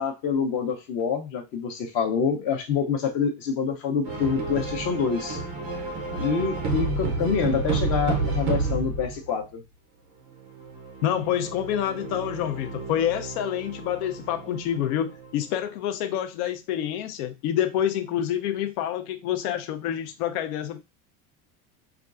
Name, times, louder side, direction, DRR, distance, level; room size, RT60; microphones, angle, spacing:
voice 1, 0.0-5.4 6.2-9.6, left 6 dB, 40° left, 0.6 m, -26 dB
sound 1, 4.0-9.2 10.4-15.3, right 3 dB, 25° right, 0.3 m, -30 dB
voice 2, 11.0-20.8, left 10 dB, 85° left, 0.7 m, -27 dB
5.7 x 2.3 x 2.4 m
cardioid pair, 175°, 43 cm